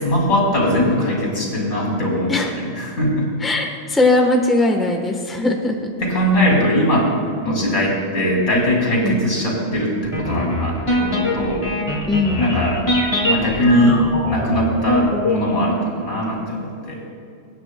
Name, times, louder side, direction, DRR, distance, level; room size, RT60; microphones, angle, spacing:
voice 1, 0.0-3.3 6.0-11.7 12.4-12.8 13.2-17.0, equal, 80° left, -3 dB, 3.1 m, -20 dB
voice 2, 3.4-5.9 9.0-9.3 12.1-12.5, left 2 dB, ahead, 2 dB, 1.0 m, -19 dB
sound 1, 10.0-15.3, left 1 dB, 25° left, 2.1 m, -22 dB
24.0 x 9.4 x 2.2 m, 2.5 s
omnidirectional pair, 1.2 m